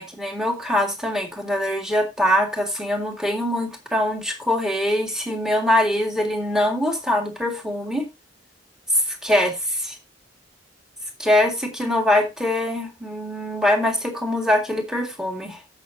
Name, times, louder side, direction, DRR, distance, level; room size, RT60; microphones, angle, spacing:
voice 1, 0.0-8.1 9.1-10.0 11.2-15.6, left 1 dB, 5° right, 2.0 m, -23 dB
16.0 x 6.1 x 2.7 m
head